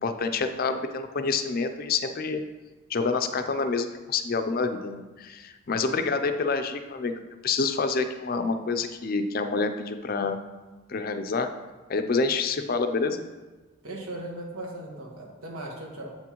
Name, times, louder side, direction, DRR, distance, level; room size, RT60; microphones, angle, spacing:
voice 1, 0.0-2.4 2.9-7.1 7.4-10.4 10.9-11.5 11.9-13.2, left 4 dB, 45° left, 7 dB, 0.4 m, -27 dB
voice 2, 13.8-16.1, right 1 dB, 90° right, -1 dB, 1.4 m, -38 dB
7.9 x 6.0 x 3.0 m, 1.2 s
head